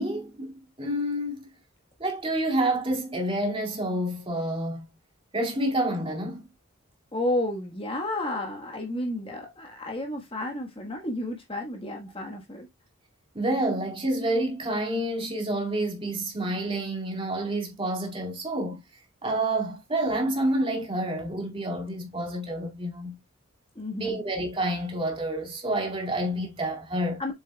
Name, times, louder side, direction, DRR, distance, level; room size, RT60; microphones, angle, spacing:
voice 1, 0.0-1.5 2.0-4.8 5.3-6.5 13.3-18.8 19.2-23.2 23.9-27.3, right 1 dB, 25° right, 2.4 m, -28 dB
voice 2, 7.1-12.7 23.7-24.2 27.2-27.3, left 1 dB, 25° left, 1.5 m, -31 dB
7.4 x 7.3 x 2.3 m
head